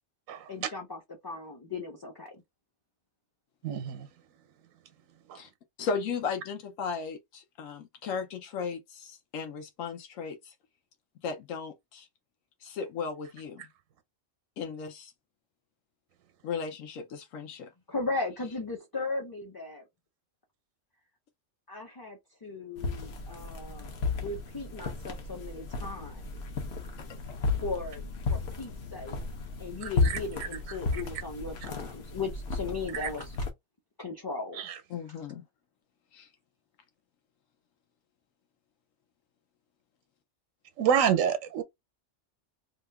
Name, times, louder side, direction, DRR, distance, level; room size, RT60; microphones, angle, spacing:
voice 1, 0.5-2.4 17.9-19.9 21.7-26.4 27.6-29.2 29.6-33.4 34.0-34.7, left 3 dB, 25° left, 0.5 m, -37 dB
voice 2, 3.6-4.1 5.3-5.4 29.8-30.2 32.9-33.1 34.5-34.8 40.8-41.6, right 8 dB, 85° right, 1.0 m, -28 dB
voice 3, 5.8-10.5 11.2-12.1 12.6-13.6 14.6-15.1 16.4-17.7 27.0-27.4 34.9-35.4 36.1-36.3, left 5 dB, 85° left, 1.1 m, -36 dB
sound 1, 22.8-33.5, left 3 dB, 60° left, 1.0 m, -34 dB
2.8 x 2.4 x 3.4 m
omnidirectional pair, 1.3 m